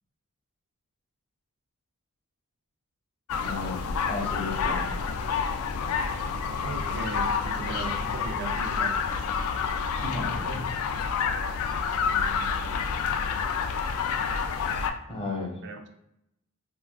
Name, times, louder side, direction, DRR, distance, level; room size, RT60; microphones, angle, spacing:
sound 1, 3.3-14.9, left 6 dB, 70° left, 0.3 m, -28 dB
voice 1, 3.4-4.8 10.0-10.6 15.1-15.6, left 3 dB, 25° left, -2 dB, 0.7 m, -34 dB
voice 2, 6.6-9.0 10.1-10.6 11.9-13.0 15.4-15.9, right 4 dB, 50° right, 5 dB, 0.3 m, -39 dB
3.5 x 2.4 x 2.3 m, 0.79 s
head